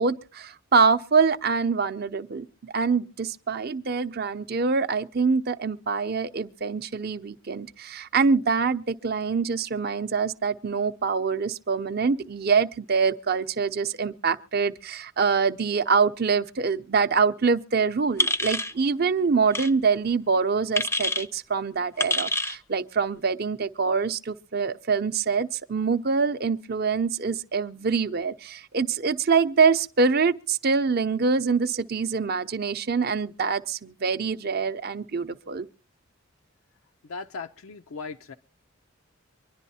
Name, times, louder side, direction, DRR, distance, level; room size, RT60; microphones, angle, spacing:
voice 1, 0.0-35.7, right 5 dB, 50° right, 0.6 m, -25 dB
sound 1, 18.2-18.7 19.5-19.7 20.8-21.3 22.0-22.6, left 2 dB, 10° left, 0.5 m, -26 dB
voice 2, 37.0-38.4, left 4 dB, 80° left, 0.5 m, -38 dB
24.5 x 11.0 x 2.7 m
head